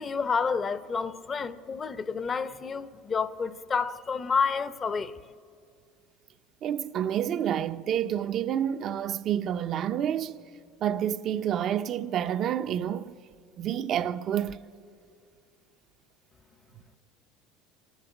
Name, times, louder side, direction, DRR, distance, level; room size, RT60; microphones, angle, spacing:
voice 1, 0.0-5.2, left 5 dB, 25° left, 0.6 m, -29 dB
voice 2, 6.6-10.4 10.8-13.2 13.6-14.6, right 10 dB, 45° right, 0.6 m, -29 dB
27.5 x 11.5 x 9.9 m
supercardioid pair, 125°, 0 cm